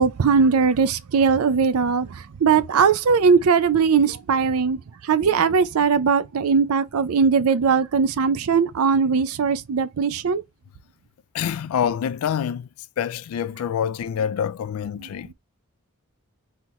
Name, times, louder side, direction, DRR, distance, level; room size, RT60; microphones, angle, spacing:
voice 1, 0.0-10.4, right 5 dB, 80° right, 0.4 m, -20 dB
voice 2, 11.3-12.7 13.0-15.3, left 8 dB, 75° left, 0.3 m, -26 dB
3.8 x 2.9 x 4.0 m
head